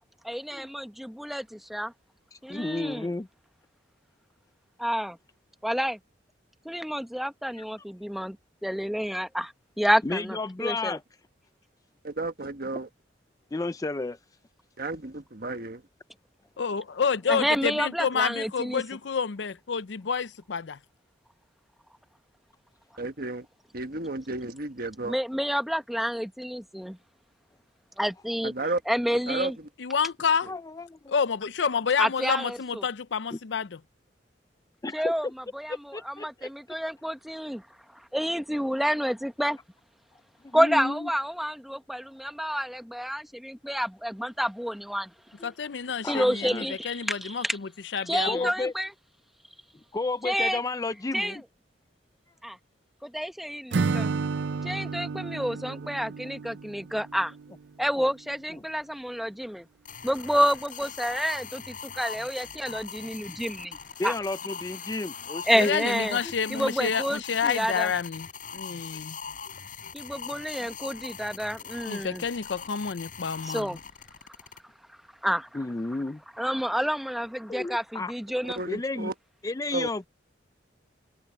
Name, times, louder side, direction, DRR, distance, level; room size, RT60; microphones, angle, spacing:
voice 1, 0.2-1.9 2.4-3.1 4.8-5.2 5.6-6.0 6.6-8.4 8.6-11.0 17.3-18.8 25.1-27.0 28.0-28.5 28.9-29.5 32.0-32.8 34.9-35.3 35.5-37.6 37.9-39.6 40.5-45.1 46.0-47.6 48.1-48.9 50.2-50.6 51.1-51.4 52.4-52.6 53.0-54.1 54.6-57.3 57.8-59.6 60.0-63.8 64.0-64.1 65.5-66.2 66.5-67.9 69.9-72.2 73.4-73.8 75.2-75.5 76.4-78.6, equal, ahead, 0.9 m, -29 dB
voice 2, 2.3-3.3 10.0-11.0 13.5-14.2 30.5-31.1 33.3-33.4 34.8-35.1 35.7-36.5 40.4-41.1 45.4-45.5 46.0-46.7 48.2-48.7 49.9-51.4 58.0-58.1 58.5-58.6 64.0-65.8 66.2-66.3 75.5-76.2 77.5-78.1 78.7-79.1 79.4-80.1, left 2 dB, 20° left, 0.4 m, -32 dB
voice 3, 12.0-12.9 14.8-15.8 23.0-23.5 23.7-25.2 28.4-28.8 29.3-29.7 30.4-30.5 55.5-55.9 78.4-79.1 79.7-79.9, right 2 dB, 55° right, 1.3 m, -33 dB
voice 4, 16.6-20.6 29.8-30.5 31.1-33.8 45.4-48.5 65.6-68.3 68.5-69.2 71.8-73.8, left 6 dB, 70° left, 0.6 m, -29 dB
Acoustic guitar / Strum, 53.7-57.6, right 4 dB, 70° right, 0.5 m, -31 dB
sound 1, 59.9-74.6, left 6 dB, 45° left, 6.1 m, -41 dB
head